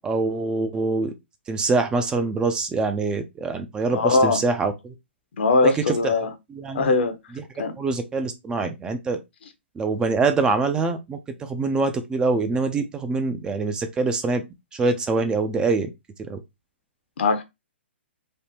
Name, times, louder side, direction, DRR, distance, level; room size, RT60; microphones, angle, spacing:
voice 1, 0.0-1.1 1.5-4.9 5.6-6.1 6.5-6.9 7.3-7.4 7.8-9.2 9.8-14.4 14.7-15.9 16.2-16.4, right 3 dB, 15° right, 0.3 m, -24 dB
voice 2, 3.9-4.4 5.4-6.3 6.7-7.2 7.6-7.7 17.2-17.4, left 3 dB, 65° left, 0.7 m, -20 dB
3.4 x 2.1 x 2.8 m
hypercardioid pair, 130°, 6 cm